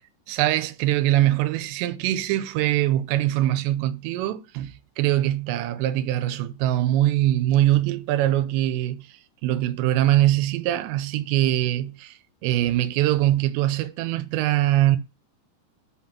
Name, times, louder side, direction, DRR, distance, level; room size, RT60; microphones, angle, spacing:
voice 1, 0.3-9.1 9.4-12.1 12.4-15.0, right 14 dB, 85° right, 2.8 m, -22 dB
5.9 x 5.6 x 5.7 m
omnidirectional pair, 5.2 m